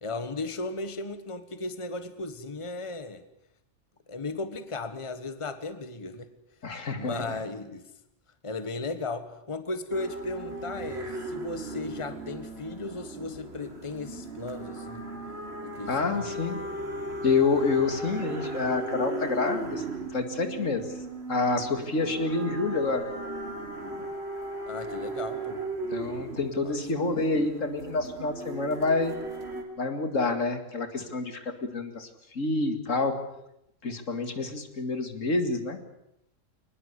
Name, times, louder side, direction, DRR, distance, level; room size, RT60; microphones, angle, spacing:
voice 1, 0.0-3.2 4.1-6.3 7.0-7.9 8.4-15.0 15.6-16.4 24.7-25.6 26.6-26.8, left 3 dB, 25° left, 11 dB, 1.4 m, -36 dB
voice 2, 6.6-7.3 15.9-16.6 17.2-19.8 20.1-20.9 21.3-23.1 25.9-29.2 29.8-33.2 33.8-35.8, left 3 dB, 80° left, 7 dB, 2.5 m, -28 dB
sound 1, 9.9-29.6, right 2 dB, 55° right, 3.3 m, -37 dB
22.5 x 20.0 x 8.3 m, 0.80 s
omnidirectional pair, 1.3 m